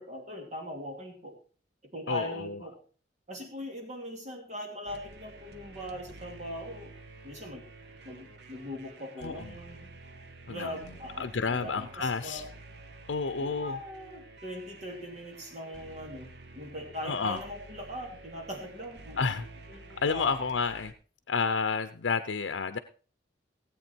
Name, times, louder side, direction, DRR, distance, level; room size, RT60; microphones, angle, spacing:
voice 1, 0.0-1.3 1.9-2.8 3.3-7.0 7.2-7.7 8.0-9.9 10.5-12.5 13.4-16.3 16.5-19.4 19.7-20.3, equal, 40° right, 2 dB, 2.7 m, -40 dB
voice 2, 2.1-2.6 9.2-9.5 10.5-10.8 11.2-12.4 13.1-13.8 17.0-17.4 19.2-19.5 19.9-20.9 21.3-22.8, left 5 dB, 80° left, 10 dB, 0.7 m, -30 dB
sound 1, 4.9-20.9, right 2 dB, 60° right, 1.3 m, -50 dB
17.0 x 8.4 x 4.5 m, 0.40 s
head